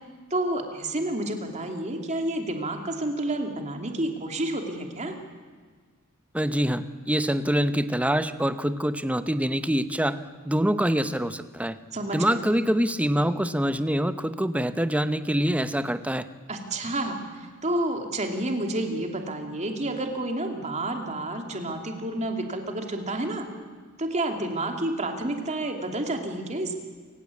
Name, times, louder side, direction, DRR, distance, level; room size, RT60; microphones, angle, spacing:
voice 1, 0.3-5.2 11.9-12.5 16.5-23.5 24.0-26.7, right 1 dB, 35° right, 4 dB, 2.8 m, -30 dB
voice 2, 6.3-10.2 10.5-11.8 12.1-16.3, equal, 5° right, 11 dB, 0.8 m, -25 dB
29.0 x 17.0 x 8.4 m, 1.5 s
head